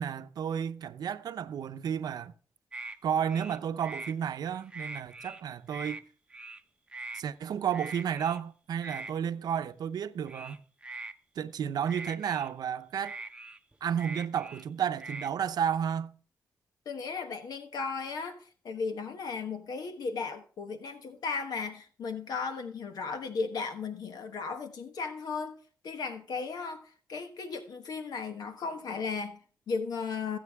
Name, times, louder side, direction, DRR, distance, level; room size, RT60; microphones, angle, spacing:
voice 1, 0.0-2.3 3.0-6.0 7.1-10.6 11.4-13.2 13.8-16.1, right 8 dB, 70° right, 0.7 m, -32 dB
sound 1, 2.7-3.0 3.3-4.1 4.5-5.4 5.7-6.0 6.3-6.6 6.9-7.2 7.7-8.4 8.8-9.1 10.3-11.1 11.9-12.5 13.0-14.7 15.0-15.3, right 2 dB, 15° right, 0.8 m, -42 dB
voice 2, 16.8-25.5 25.8-30.4, left 4 dB, 70° left, 1.2 m, -36 dB
19.0 x 7.8 x 3.6 m
cardioid pair, 80°, 7 cm